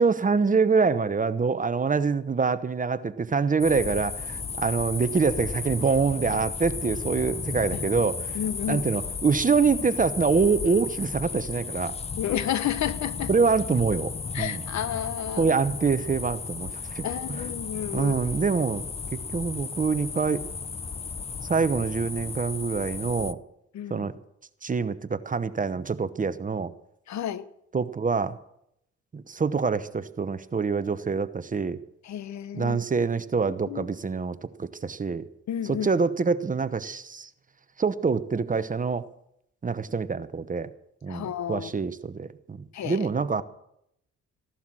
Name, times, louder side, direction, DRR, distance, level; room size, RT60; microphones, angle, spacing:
voice 1, 0.0-8.4 8.7-12.0 13.3-14.1 14.4-14.6 15.4-17.1 17.9-18.8 19.3-20.5 21.4-23.4 23.9-24.1 24.6-26.7 27.7-28.4 29.1-31.8 32.5-35.3 35.6-37.3 37.8-39.0 39.6-40.7 41.0-43.4, right 5 dB, 25° right, 0.9 m, -25 dB
sound 1, 3.6-23.3, left 5 dB, 20° left, 0.5 m, -34 dB
voice 2, 8.3-8.9 12.2-13.3 14.3-15.5 17.0-18.2 23.7-24.1 27.1-27.4 32.0-32.8 33.7-33.9 35.5-35.9 41.1-41.7 42.7-43.1, left 10 dB, 65° left, 1.0 m, -31 dB
15.5 x 11.5 x 6.2 m
cardioid pair, 90°, 30 cm